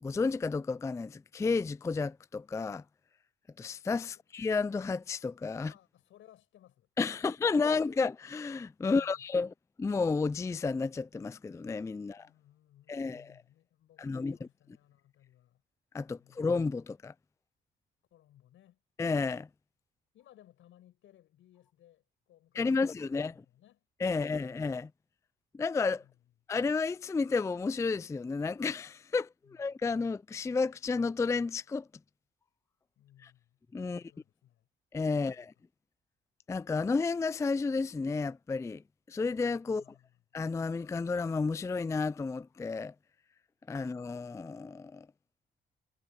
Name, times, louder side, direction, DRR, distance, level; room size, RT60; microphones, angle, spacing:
voice 1, 0.0-2.8 3.6-5.7 7.0-9.5 9.8-12.3 12.9-13.3 14.0-14.4 15.9-17.1 19.0-19.5 22.6-23.3 24.0-24.9 25.5-26.0 26.5-31.9 33.7-34.0 34.9-35.5 36.5-38.8 39.1-39.8 40.3-42.9 43.7-45.1, left 4 dB, 15° left, 0.3 m, -31 dB
voice 2, 5.6-7.8 8.8-9.3 12.0-15.6 16.2-16.5 18.1-18.8 20.1-24.5 26.0-26.3 29.4-29.6 33.0-34.7 35.1-35.5 39.6-40.2, left 12 dB, 80° left, 6.4 m, -62 dB
cardioid pair, 90°, 20 cm